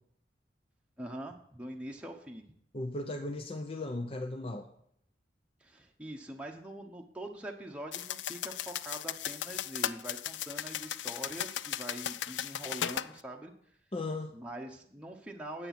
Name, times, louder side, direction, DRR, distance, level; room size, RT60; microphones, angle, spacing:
voice 1, 1.0-2.4 5.6-13.5 14.3-15.7, right 1 dB, 5° right, 1 dB, 0.9 m, -43 dB
voice 2, 2.7-4.7 13.9-14.4, left 2 dB, 30° left, 5 dB, 0.6 m, -36 dB
sound 1, 7.9-13.1, left 11 dB, 85° left, 0.4 m, -36 dB
9.8 x 8.1 x 5.9 m, 0.70 s
head